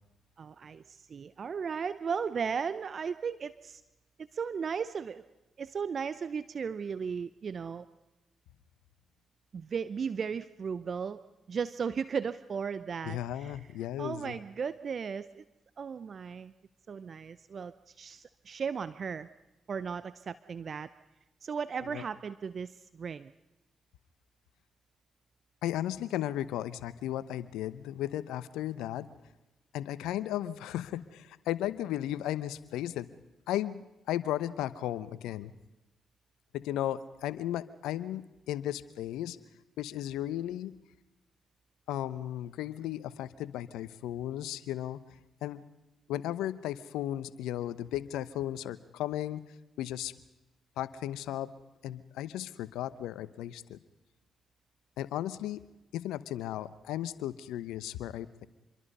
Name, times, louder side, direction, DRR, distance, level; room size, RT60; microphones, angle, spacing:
voice 1, 0.4-3.8 4.2-5.2 5.6-7.9 9.5-11.2 11.5-13.6 14.0-15.4 15.8-16.5 16.9-19.3 19.7-20.9 21.4-23.3, right 6 dB, 55° right, 15 dB, 0.7 m, -36 dB
voice 2, 13.0-14.3 21.9-22.0 25.6-29.1 29.7-33.1 33.5-35.5 36.5-39.4 39.8-40.7 41.9-45.0 45.4-45.6 46.1-49.4 49.8-50.1 50.8-51.5 51.8-53.8 55.0-55.6 55.9-58.5, left 12 dB, 80° left, 16 dB, 0.9 m, -35 dB
26.5 x 22.5 x 5.5 m, 1.0 s
hypercardioid pair, 45°, 0 cm